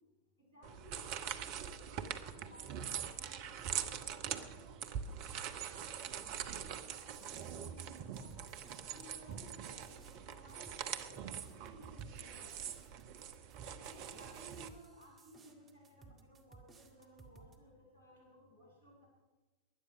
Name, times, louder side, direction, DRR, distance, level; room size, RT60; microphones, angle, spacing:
voice 1, 0.4-4.7 5.8-8.4 8.9-11.1 11.4-12.7 13.7-19.1, right 1 dB, 75° right, -3 dB, 7.6 m, -59 dB
sound 1, 0.6-14.7, right 8 dB, 45° right, 1.0 m, -43 dB
sound 2, 7.0-17.6, right 4 dB, 25° right, 2.0 m, -60 dB
19.5 x 11.5 x 6.4 m, 1.2 s
figure-of-eight pair, 90°, 0 cm